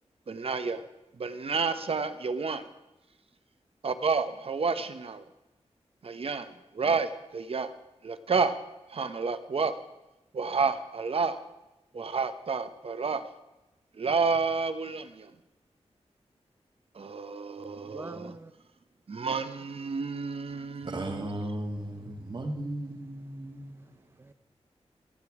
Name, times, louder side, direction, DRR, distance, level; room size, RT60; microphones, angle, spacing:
voice 1, 0.3-0.8 1.2-2.6 3.8-5.2 6.0-7.7 8.0-8.5 8.9-9.7 10.3-11.4 11.9-13.2 14.0-15.3 16.9-18.3 19.1-21.3, right 4 dB, 55° right, 11 dB, 1.0 m, -30 dB
voice 2, 17.7-18.5 22.0-22.3 23.5-24.3, right 3 dB, 20° right, 12 dB, 0.7 m, -46 dB
voice 3, 20.8-23.9, right 1 dB, 40° right, 4 dB, 1.7 m, -36 dB
27.0 x 9.1 x 4.9 m, 0.98 s
wide cardioid pair, 140°, 11 cm